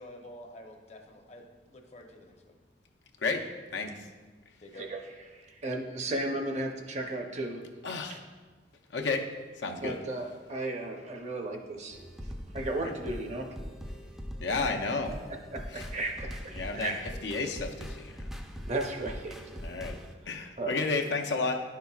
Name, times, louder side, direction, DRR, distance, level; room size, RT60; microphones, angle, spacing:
voice 1, 0.0-2.6 4.0-4.2 4.6-4.9, left 1 dB, 40° left, 3 dB, 0.7 m, -49 dB
voice 2, 3.7-4.1 7.8-8.2 8.9-9.3 9.6-10.0 12.8-12.9 14.4-15.1 15.7-15.9 16.6-18.2 19.6-20.0 20.3-21.6, left 3 dB, 75° left, 3 dB, 0.6 m, -32 dB
voice 3, 5.3-7.6 8.1-8.2 9.8-12.0 12.5-13.6 15.5-17.0 18.6-19.4 20.3-20.8, right 2 dB, 40° right, 3 dB, 0.7 m, -35 dB
sound 1, 11.9-20.1, equal, ahead, 0.4 m, -42 dB
10.0 x 5.7 x 2.3 m, 1.4 s
head